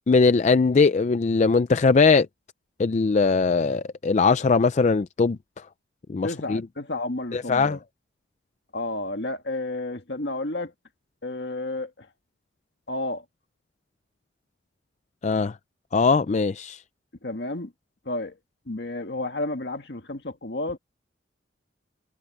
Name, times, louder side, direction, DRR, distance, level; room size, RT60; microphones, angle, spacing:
voice 1, 0.1-2.3 2.8-5.7 6.1-6.7 7.3-7.8 15.2-15.6 15.9-16.8, left 4 dB, 40° left, 0.4 m, -20 dB
voice 2, 6.2-7.8 8.7-10.7 11.2-12.1 12.9-13.2 17.2-17.7 18.1-18.4 18.7-20.8, left 2 dB, 60° left, 1.9 m, -31 dB
head